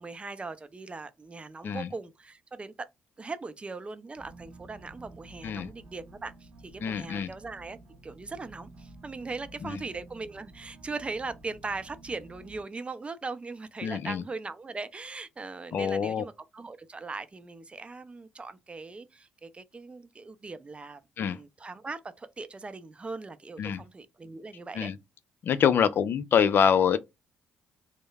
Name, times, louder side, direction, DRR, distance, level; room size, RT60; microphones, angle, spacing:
voice 1, 0.0-2.9 3.2-7.8 8.0-21.0 21.3-24.9, right 3 dB, 25° right, 0.4 m, -40 dB
sound 1, 4.2-12.6, right 2 dB, 60° right, 0.7 m, -51 dB
voice 2, 6.8-7.3 9.6-9.8 13.8-14.2 15.7-16.2 21.2-21.4 23.6-23.8 24.8-25.0 25.4-27.0, left 7 dB, 55° left, 0.4 m, -25 dB
3.0 x 2.0 x 2.3 m
hypercardioid pair, 45°, 4 cm